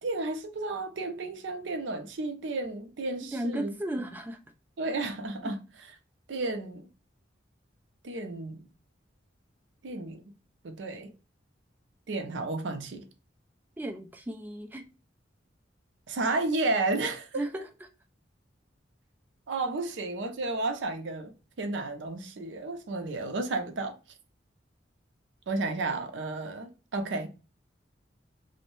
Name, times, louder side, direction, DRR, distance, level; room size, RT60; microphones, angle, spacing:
voice 1, 0.0-3.7 4.8-5.6 6.3-6.9 8.0-8.7 9.8-10.2 10.6-11.1 12.1-13.0 16.1-17.3 19.5-24.0 25.5-27.3, right 2 dB, 75° right, 0.5 m, -32 dB
voice 2, 3.2-4.4 5.4-5.5 13.8-14.8 17.3-17.7, right 1 dB, 10° right, 0.3 m, -35 dB
2.6 x 2.1 x 3.0 m
head